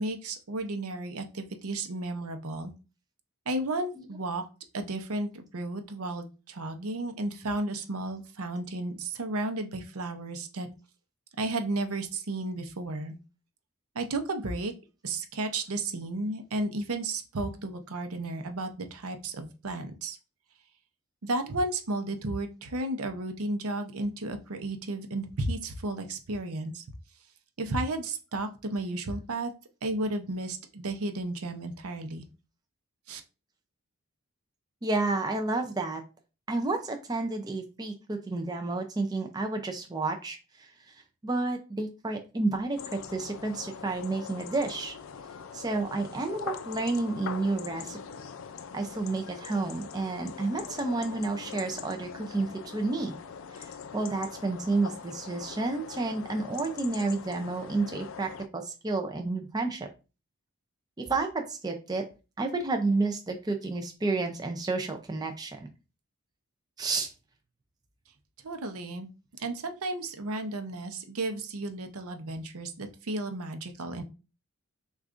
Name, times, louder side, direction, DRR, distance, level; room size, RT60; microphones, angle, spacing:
voice 1, 0.0-2.7 3.5-4.4 4.7-10.7 11.4-13.2 13.9-14.7 15.0-20.2 21.2-26.8 27.6-29.5 29.8-32.3 33.1-33.2 68.4-69.1 69.4-74.0, right 2 dB, 80° right, 7 dB, 0.7 m, -33 dB
voice 2, 34.8-36.0 36.5-40.9 41.2-45.0 45.5-48.0 48.7-53.1 53.5-59.9 61.0-62.1 62.4-65.7 66.8-67.1, right 3 dB, 20° right, 4 dB, 0.4 m, -30 dB
sound 1, 42.8-58.5, left 7 dB, 60° left, 0.4 m, -42 dB
6.2 x 2.4 x 2.5 m, 0.31 s
head